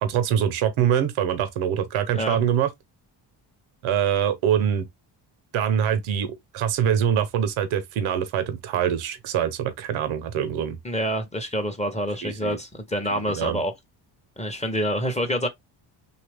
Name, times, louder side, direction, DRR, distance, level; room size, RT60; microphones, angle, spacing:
voice 1, 0.0-2.7 3.8-4.9 5.5-10.8 12.2-12.6 13.1-13.6, right 9 dB, 80° right, 0.8 m, -24 dB
voice 2, 10.8-13.7 14.4-15.5, equal, 15° left, 0.7 m, -27 dB
2.8 x 2.4 x 3.3 m
cardioid pair, 90°, 47 cm